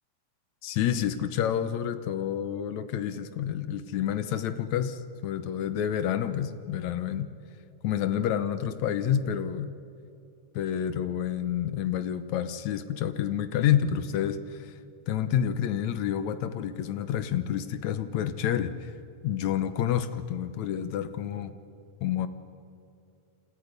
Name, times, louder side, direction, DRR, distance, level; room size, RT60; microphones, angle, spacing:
voice 1, 0.6-7.3 7.8-9.7 10.6-14.7 15.1-18.9 19.2-21.5 22.0-22.3, left 9 dB, 70° left, 11 dB, 2.0 m, -29 dB
28.0 x 27.5 x 5.3 m, 2.5 s
omnidirectional pair, 3.7 m